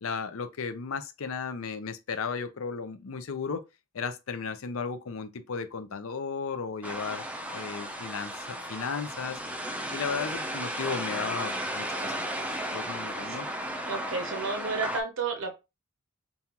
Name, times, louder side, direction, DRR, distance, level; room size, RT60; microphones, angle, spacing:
voice 1, 0.0-3.6 3.9-7.2 7.5-9.4 9.9-13.5, left 5 dB, 70° left, 0.5 m, -35 dB
sound 1, 6.8-15.0, right 1 dB, 5° right, 0.4 m, -34 dB
voice 2, 13.8-15.5, right 4 dB, 60° right, 0.7 m, -31 dB
5.3 x 2.3 x 2.9 m
head